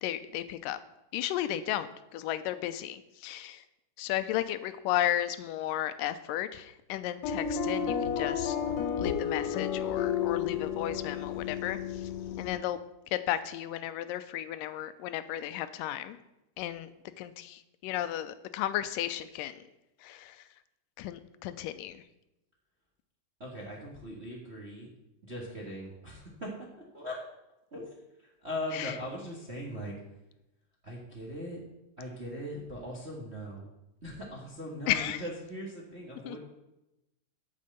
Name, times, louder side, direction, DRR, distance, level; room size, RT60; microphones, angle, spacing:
voice 1, 0.0-0.8 1.1-3.6 4.0-8.6 9.0-12.0 12.4-12.8 13.1-16.2 16.6-16.9 17.2-19.6 20.0-20.4 21.0-22.0 28.7-28.9 34.9-35.2 36.3-36.4, left 12 dB, 90° left, 12 dB, 2.3 m, -34 dB
sound 1, 7.2-12.6, left 8 dB, 70° left, 1.7 m, -32 dB
voice 2, 23.4-24.9 25.2-26.5 26.9-27.2 27.7-27.8 28.2-29.9 30.8-31.6 32.0-33.7 34.0-36.4, left 1 dB, 35° right, -2 dB, 1.1 m, -40 dB
8.7 x 6.6 x 7.8 m, 0.92 s
omnidirectional pair, 3.8 m